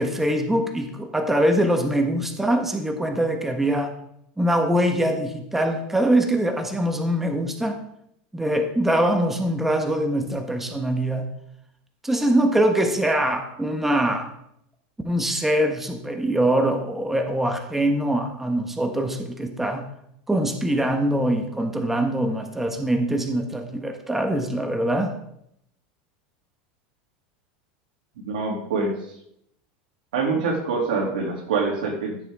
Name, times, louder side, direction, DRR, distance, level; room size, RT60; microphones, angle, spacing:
voice 1, 0.0-3.9 4.4-7.8 8.3-11.3 12.0-14.3 15.0-19.8 20.3-25.1, right 1 dB, 5° right, 4 dB, 1.3 m, -23 dB
voice 2, 28.2-28.9 30.1-32.2, right 4 dB, 85° right, 1 dB, 2.8 m, -25 dB
14.5 x 7.2 x 3.7 m, 0.75 s
supercardioid pair, 125°, 5 cm